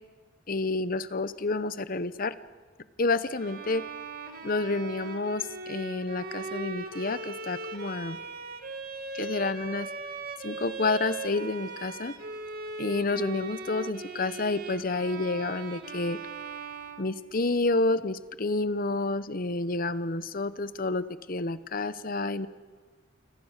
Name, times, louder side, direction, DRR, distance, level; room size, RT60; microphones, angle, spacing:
voice 1, 0.5-2.3 3.0-3.9 4.4-8.2 9.1-9.9 10.4-12.1 12.8-16.2 17.0-22.5, left 3 dB, 45° left, 15 dB, 0.9 m, -29 dB
Bowed string instrument, 3.4-17.6, right 3 dB, 50° right, 2.2 m, -39 dB
28.0 x 25.5 x 6.6 m, 1.5 s
head